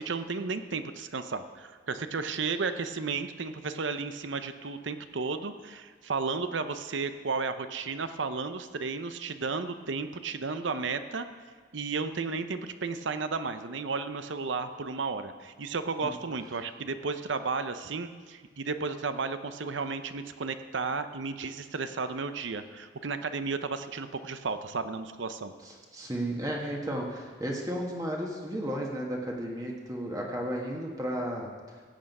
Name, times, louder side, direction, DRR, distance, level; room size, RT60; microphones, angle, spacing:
voice 1, 0.0-11.3 11.7-25.5, right 4 dB, 70° right, 10 dB, 0.7 m, -33 dB
voice 2, 25.6-31.5, equal, 20° right, -1 dB, 1.4 m, -33 dB
15.5 x 8.8 x 5.4 m, 1.5 s
head